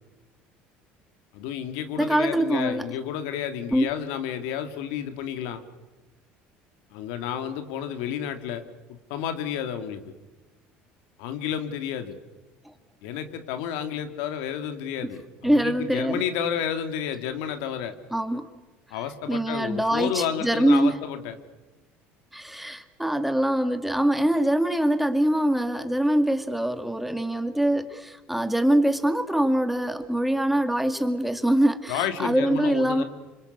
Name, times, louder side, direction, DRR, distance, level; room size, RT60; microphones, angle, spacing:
voice 1, 1.3-5.6 6.9-8.6 8.9-10.1 11.2-12.2 13.0-18.0 18.9-21.4 31.9-33.0, left 9 dB, 85° left, 8 dB, 2.7 m, -31 dB
voice 2, 2.0-2.9 3.7-3.9 15.4-16.2 18.1-18.5 19.3-21.0 22.3-33.0, right 1 dB, 5° right, 8 dB, 2.2 m, -23 dB
27.0 x 25.5 x 8.2 m, 1.1 s
cardioid pair, 115°, 4 cm